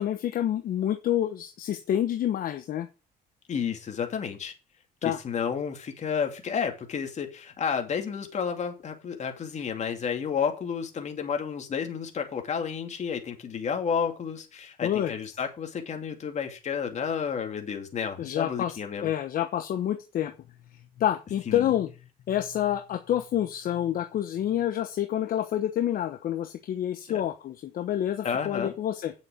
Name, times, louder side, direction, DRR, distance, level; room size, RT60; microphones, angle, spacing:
voice 1, 0.0-2.9 5.0-5.2 14.8-15.1 18.2-20.3 21.0-21.9 22.3-29.1, left 11 dB, 60° left, 7 dB, 1.1 m, -28 dB
voice 2, 3.5-4.5 5.0-19.1 21.5-21.7 27.1-27.2 28.2-28.7, left 7 dB, 45° left, 4 dB, 2.6 m, -31 dB
9.5 x 7.1 x 5.1 m, 0.31 s
cardioid pair, 110°, 17 cm